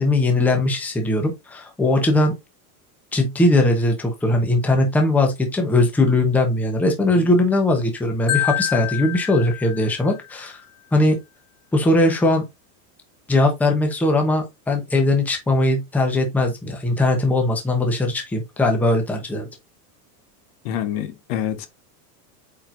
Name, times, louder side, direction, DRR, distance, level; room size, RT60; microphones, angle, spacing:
voice 1, 0.0-2.3 3.1-10.6 10.9-11.2 11.7-12.4 13.3-19.5, left 2 dB, 5° left, 0.8 m, -20 dB
voice 2, 7.0-7.3 20.6-21.7, left 10 dB, 40° left, 0.9 m, -27 dB
Marimba xylophone, 8.3-10.4, left 15 dB, 70° left, 1.8 m, -27 dB
8.5 x 4.5 x 2.5 m
supercardioid pair, 170°, 46 cm